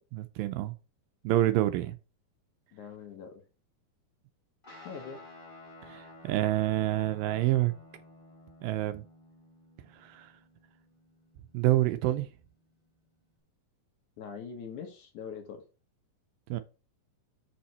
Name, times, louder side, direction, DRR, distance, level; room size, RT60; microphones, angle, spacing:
voice 1, 0.1-0.7 1.2-2.0 5.8-7.7 8.6-9.0 9.9-10.3 11.5-12.3 16.5-16.6, right 15 dB, 80° right, 2.2 m, -27 dB
voice 2, 2.7-3.4 4.8-5.2 14.2-15.6, left 6 dB, 60° left, 2.4 m, -42 dB
Guitar, 4.6-13.4, left 2 dB, 15° left, 3.0 m, -54 dB
6.5 x 5.8 x 4.2 m
omnidirectional pair, 4.3 m